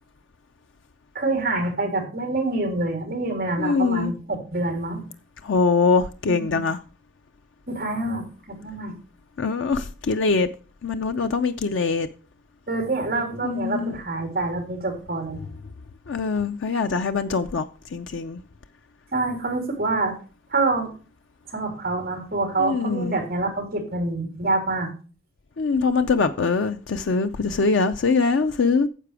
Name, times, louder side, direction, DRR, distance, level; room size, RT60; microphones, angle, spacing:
voice 1, 1.1-5.0 6.2-6.6 7.7-9.0 12.7-15.4 19.1-20.1 20.5-20.9 21.5-24.9, right 2 dB, 50° right, 3.2 m, -26 dB
voice 2, 3.6-4.1 5.4-6.8 9.4-10.5 10.8-12.1 13.4-14.0 16.1-17.7 17.9-18.4 22.6-23.2 25.6-28.9, left 4 dB, 90° left, 0.5 m, -23 dB
10.0 x 6.6 x 4.8 m
head